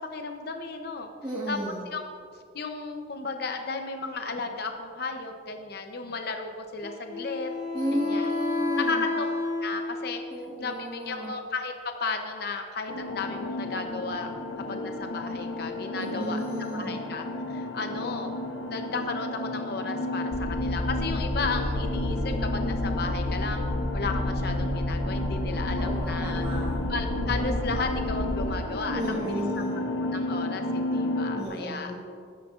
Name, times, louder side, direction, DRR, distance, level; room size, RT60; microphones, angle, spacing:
voice 1, 0.1-1.1 1.5-2.0 2.5-7.5 7.9-8.3 8.9-9.3 9.6-11.7 12.0-14.3 14.7-16.4 16.7-18.3 18.7-23.6 23.9-26.4 26.9-29.4 30.1-31.9, left 4 dB, 55° left, 5 dB, 0.8 m, -34 dB
voice 2, 1.2-1.8 7.7-9.0 10.3-11.3 15.9-17.0 25.8-26.8 28.9-29.8 31.3-32.0, equal, 20° right, -6 dB, 1.5 m, -32 dB
Wind instrument woodwind instrument, 6.8-10.4, left 3 dB, 25° left, 2.5 m, -31 dB
sound 1, 12.9-31.4, left 1 dB, 80° left, 0.9 m, -33 dB
sound 2, 20.3-28.5, left 1 dB, 10° left, 0.9 m, -30 dB
18.0 x 9.6 x 2.5 m, 2.2 s
head